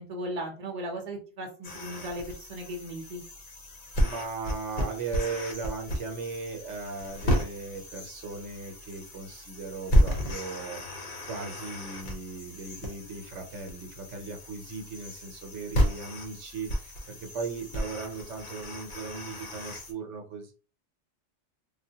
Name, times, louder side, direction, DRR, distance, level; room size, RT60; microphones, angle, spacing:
voice 1, 0.0-3.2, right 1 dB, 35° right, 2 dB, 0.8 m, -37 dB
sound 1, 1.6-19.9, equal, 50° left, 0.9 m, -32 dB
voice 2, 4.0-10.8 11.3-20.5, right 4 dB, 80° right, 3 dB, 1.0 m, -37 dB
3.7 x 2.1 x 2.7 m, 0.36 s
omnidirectional pair, 1.2 m